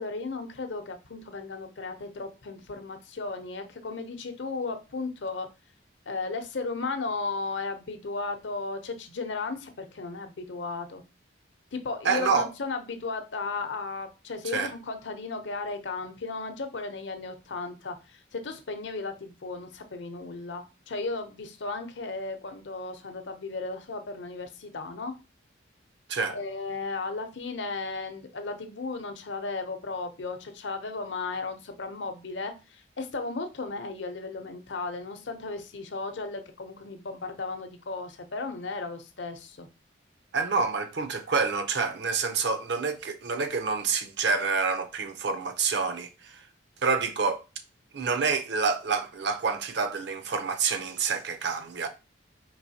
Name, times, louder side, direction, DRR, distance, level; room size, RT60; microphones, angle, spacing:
voice 1, 0.0-5.5 6.1-11.0 11.7-25.1 26.3-39.7, left 3 dB, 75° left, 0.7 m, -35 dB
voice 2, 12.0-12.5 14.5-14.7 26.1-26.3 40.3-46.4 46.8-47.4 47.9-51.9, right 5 dB, 65° right, 0.6 m, -27 dB
4.6 x 3.1 x 2.7 m
head